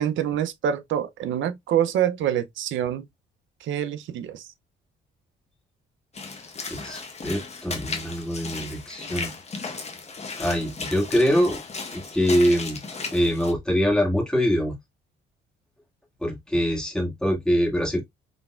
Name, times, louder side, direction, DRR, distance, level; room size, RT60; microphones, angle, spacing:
voice 1, 0.0-3.1 3.6-4.4, right 10 dB, 75° right, 0.6 m, -26 dB
Walk footsteps / Splash splatter, 6.1-13.5, left 4 dB, 35° left, 1.1 m, -35 dB
voice 2, 6.7-9.3 10.4-11.6 11.9-12.8 13.1-14.7 16.2-18.0, equal, 5° left, 1.9 m, -24 dB
3.9 x 3.4 x 2.4 m
cardioid pair, 90°, 20 cm